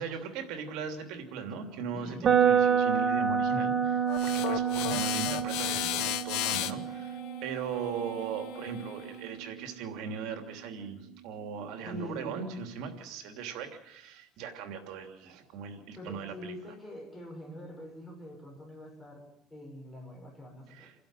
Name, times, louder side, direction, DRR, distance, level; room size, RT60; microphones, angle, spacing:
voice 1, 0.0-16.5 20.7-20.9, right 6 dB, 70° right, 5 dB, 3.0 m, -39 dB
voice 2, 1.9-2.2 3.7-3.8 11.8-12.3 16.0-20.9, equal, 10° left, 0 dB, 6.2 m, -44 dB
sound 1, 2.2-10.2, right 7 dB, 30° right, 1.3 m, -29 dB
sound 2, 4.1-9.2, left 14 dB, 80° left, 1.4 m, -35 dB
28.5 x 12.0 x 9.0 m, 0.85 s
cardioid pair, 170°, 0 cm